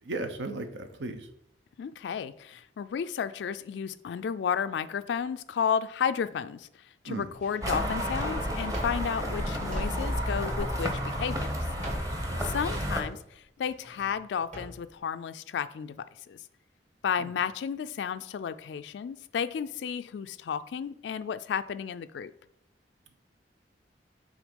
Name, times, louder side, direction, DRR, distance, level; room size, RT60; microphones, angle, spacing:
voice 1, 0.0-1.3 7.0-7.3 12.3-12.4 17.2-17.3, right 2 dB, 75° right, 7 dB, 0.7 m, -36 dB
voice 2, 1.8-6.7 7.0-11.7 12.1-16.4 17.0-22.3, left 7 dB, 70° left, 12 dB, 0.3 m, -32 dB
Drawer open or close, 7.3-10.4 10.7-15.0, equal, 45° right, 1.7 m, -45 dB
sound 1, 7.6-13.0, equal, 20° right, 1.0 m, -31 dB
6.2 x 3.9 x 5.1 m, 0.71 s
head